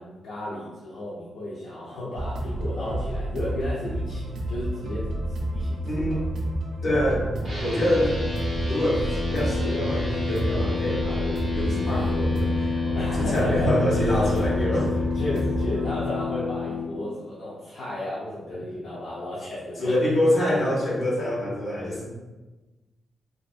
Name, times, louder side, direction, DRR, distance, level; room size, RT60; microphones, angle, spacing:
voice 1, 0.0-6.3 12.9-14.4 15.1-19.9, left 1 dB, 60° left, -7 dB, 0.5 m, -34 dB
sound 1, 2.1-15.9, right 1 dB, 85° right, 0.5 m, -30 dB
voice 2, 5.9-6.2 6.8-7.2 7.6-8.1 8.7-9.0 9.3-12.7 13.1-15.0 19.8-22.1, left 1 dB, 35° left, -6 dB, 0.9 m, -25 dB
sound 2, 7.4-16.8, left 4 dB, 25° right, 0.8 m, -29 dB
2.5 x 2.4 x 2.4 m, 1.2 s
wide cardioid pair, 155°, 0 cm